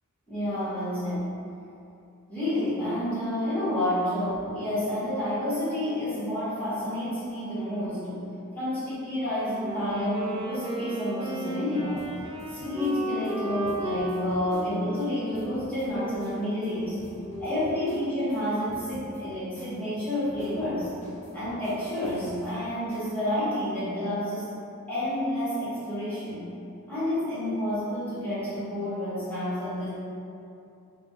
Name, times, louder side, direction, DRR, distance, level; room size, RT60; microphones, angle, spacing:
voice 1, 0.3-1.3 2.3-8.2 8.5-12.1 12.5-17.0 17.4-20.9 21.3-24.5 24.9-26.4 26.9-29.9, left 1 dB, 5° left, -13 dB, 1.2 m, -29 dB
Wind instrument woodwind instrument, 9.5-18.2, equal, 20° right, 0.4 m, -35 dB
sound 1, 11.9-15.1 15.3-15.9 16.2-16.4 16.6-18.4 18.7-19.2 19.5-22.5 22.9-23.1, equal, 35° left, 0.6 m, -49 dB
3.4 x 2.2 x 3.7 m, 2.7 s
head